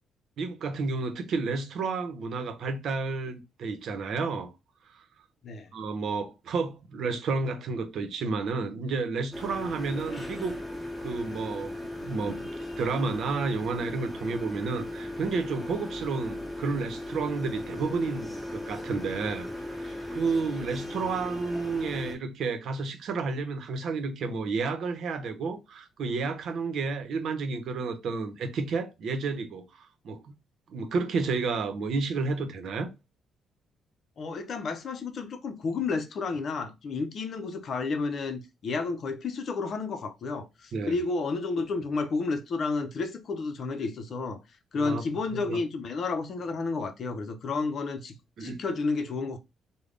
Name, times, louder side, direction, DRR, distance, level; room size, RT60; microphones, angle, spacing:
voice 1, 0.4-4.5 4.9-5.0 5.7-10.6 11.0-12.5 12.8-30.2 30.7-32.9 40.7-41.0 44.8-45.6 48.4-48.6, right 4 dB, 65° right, 0.8 m, -31 dB
sound 1, 9.3-22.2, left 1 dB, ahead, 1.6 m, -37 dB
voice 2, 34.2-44.4 44.7-49.4, left 4 dB, 55° left, 0.7 m, -31 dB
3.3 x 2.2 x 3.8 m
cardioid pair, 90°, 0 cm